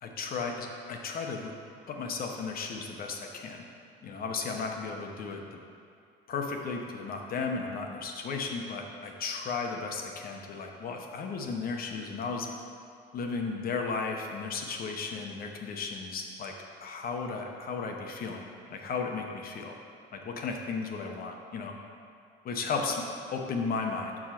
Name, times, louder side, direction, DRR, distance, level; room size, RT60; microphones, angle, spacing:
voice 1, 0.0-1.5 1.9-3.7 4.0-5.6 6.3-12.5 13.1-16.5 16.8-18.4 18.7-19.7 20.1-21.7 22.4-23.0 23.3-24.2, left 4 dB, 50° left, 2 dB, 0.9 m, -34 dB
6.2 x 4.8 x 5.8 m, 2.4 s
cardioid pair, 110°, 20 cm